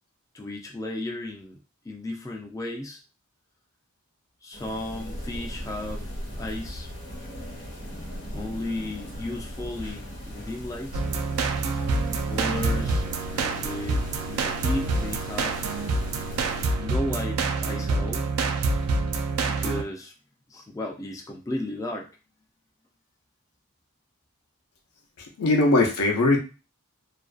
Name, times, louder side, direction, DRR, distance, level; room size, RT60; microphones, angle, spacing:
voice 1, 0.3-1.6 1.8-3.0 4.4-6.9 8.3-11.0 12.3-13.1 13.3-14.0 14.3-15.6 16.8-18.3 19.4-20.1 20.5-22.1, left 1 dB, 15° left, 0 dB, 0.3 m, -34 dB
sound 1, 4.5-16.7, equal, 55° left, 0.9 m, -39 dB
sound 2, 10.9-19.8, right 3 dB, 70° right, 0.4 m, -27 dB
voice 2, 25.2-26.4, left 2 dB, 85° left, 1 dB, 0.6 m, -21 dB
2.4 x 2.2 x 2.3 m, 0.32 s
head